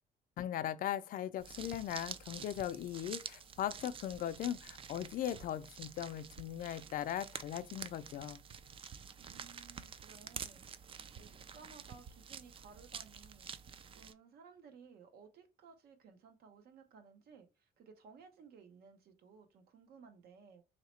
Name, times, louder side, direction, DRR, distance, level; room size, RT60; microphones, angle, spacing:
voice 1, 0.4-8.4, left 11 dB, 55° left, 0.4 m, -39 dB
sound 1, 1.4-14.1, right 7 dB, 35° right, 0.4 m, -49 dB
voice 2, 9.2-13.5 13.9-20.6, right 5 dB, 65° right, 1.0 m, -58 dB
3.0 x 2.9 x 4.2 m
cardioid pair, 110°, 17 cm